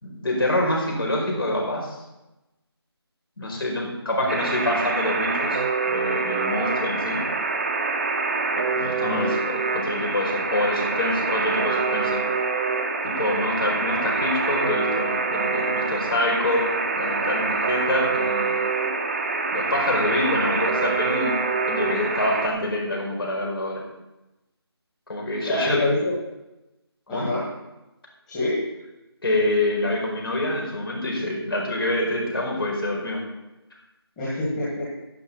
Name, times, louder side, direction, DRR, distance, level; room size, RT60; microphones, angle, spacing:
voice 1, 0.0-1.9 3.4-5.6 5.9-7.2 8.8-12.2 13.0-18.7 19.5-21.3 21.7-23.8 25.1-25.8 27.1-27.3 29.2-33.2, left 1 dB, 60° left, -2 dB, 5.2 m, -26 dB
Alarm, 4.3-22.5, right 4 dB, 30° right, 1.3 m, -25 dB
voice 2, 8.7-9.4 25.4-26.1 27.1-27.5 28.3-28.6 34.2-35.0, left 1 dB, 10° left, -11 dB, 2.1 m, -27 dB
12.0 x 11.5 x 4.3 m, 0.98 s
figure-of-eight pair, 165°, 14 cm